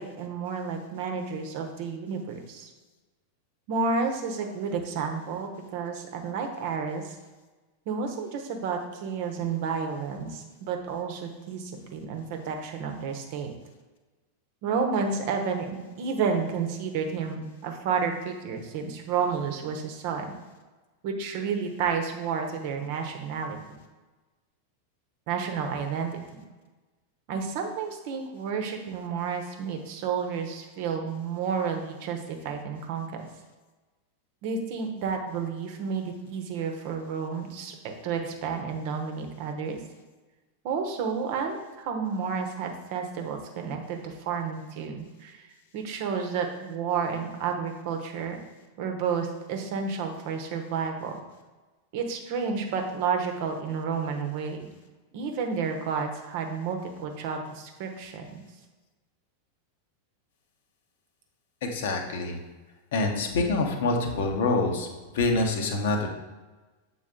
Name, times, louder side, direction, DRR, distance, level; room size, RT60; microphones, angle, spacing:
voice 1, 0.0-2.7 3.7-7.1 7.9-13.5 14.6-20.3 21.0-23.8 25.3-26.4 27.3-33.1 34.4-39.8 40.6-45.5 45.7-48.4 48.8-51.2 51.9-54.6 55.1-58.3, right 5 dB, 50° right, 4 dB, 0.9 m, -31 dB
voice 2, 61.6-62.4 62.9-64.9 65.1-66.1, left 3 dB, 55° left, 3 dB, 1.0 m, -26 dB
7.4 x 4.0 x 3.7 m, 1.2 s
figure-of-eight pair, 90°, 0 cm